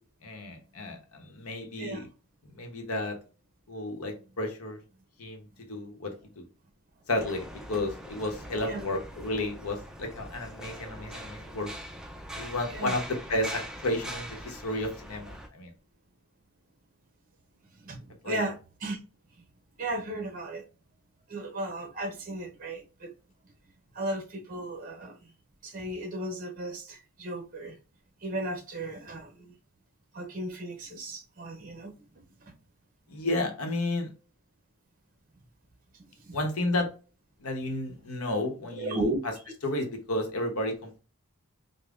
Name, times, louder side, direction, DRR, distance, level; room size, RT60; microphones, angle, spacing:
voice 1, 0.2-2.1 2.5-3.2 3.7-4.8 5.2-6.4 7.1-11.7 12.4-15.7 18.2-18.4 33.1-34.1 36.3-36.9 37.4-39.1 39.6-41.0, left 1 dB, 75° left, 0.9 m, -32 dB
sound 1, 7.2-15.5, right 1 dB, 5° right, 0.3 m, -42 dB
voice 2, 17.8-19.0 19.8-20.7 21.3-23.1 23.9-25.3 25.6-27.8 28.2-29.5 30.1-32.5 36.0-36.4 38.3-38.4 38.8-39.2, right 1 dB, 40° right, 0.7 m, -35 dB
5.1 x 2.1 x 2.4 m
head